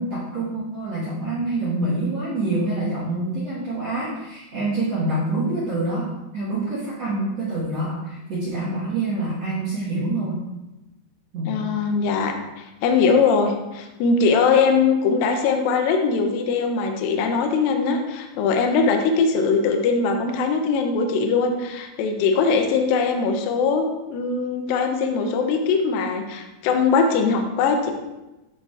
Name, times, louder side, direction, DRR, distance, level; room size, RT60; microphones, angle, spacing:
voice 1, 0.0-6.1 6.3-10.4 11.3-11.6, right 2 dB, 60° right, -9 dB, 1.7 m, -26 dB
voice 2, 11.5-27.9, left 5 dB, 90° left, 4 dB, 2.0 m, -21 dB
11.0 x 4.0 x 2.4 m, 1.0 s
omnidirectional pair, 4.9 m